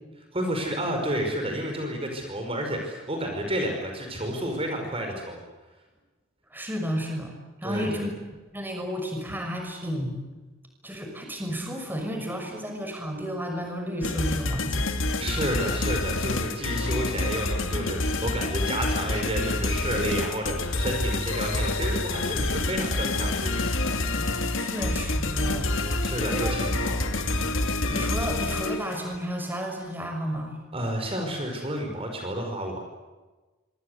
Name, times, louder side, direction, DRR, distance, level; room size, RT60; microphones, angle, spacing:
voice 1, 0.3-5.4 7.6-8.1 15.2-24.0 26.0-27.6 30.7-32.8, equal, 30° right, 3 dB, 5.5 m, -31 dB
voice 2, 6.5-7.3 7.6-8.1 8.5-10.2 10.8-14.9 24.2-26.0 26.3-26.5 27.9-30.6, equal, 10° right, 3 dB, 6.1 m, -32 dB
sound 1, 14.0-29.1, left 2 dB, 70° left, 2.6 m, -27 dB
26.0 x 26.0 x 8.2 m, 1.2 s
head